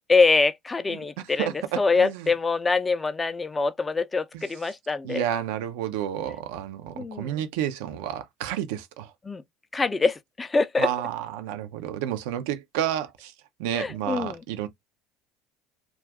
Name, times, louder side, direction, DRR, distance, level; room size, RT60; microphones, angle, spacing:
voice 1, 0.1-5.3 7.0-7.4 9.2-9.4 9.7-10.9 13.7-14.4, left 4 dB, 20° left, 0.4 m, -24 dB
voice 2, 1.4-2.3 4.3-4.4 5.0-9.1 10.8-13.3 13.6-14.7, right 11 dB, 70° right, 0.5 m, -30 dB
2.5 x 2.3 x 3.4 m
hypercardioid pair, 70°, 0 cm